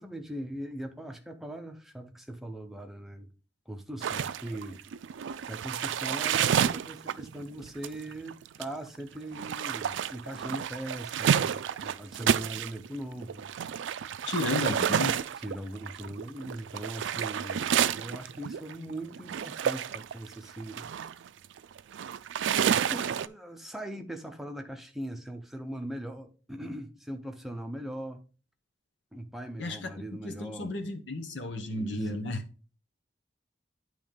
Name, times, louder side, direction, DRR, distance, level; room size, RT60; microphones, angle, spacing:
voice 1, 0.0-3.3 3.7-4.8 5.5-13.5 14.6-15.0 15.4-20.9 22.9-28.2 29.1-30.8 31.6-32.1, right 1 dB, ahead, 0.7 m, -40 dB
sound 1, 4.0-12.9 13.2-23.3, right 8 dB, 90° right, 0.4 m, -30 dB
voice 2, 14.3-15.2 29.6-32.4, left 2 dB, 80° left, 1.0 m, -33 dB
9.1 x 3.1 x 5.1 m
head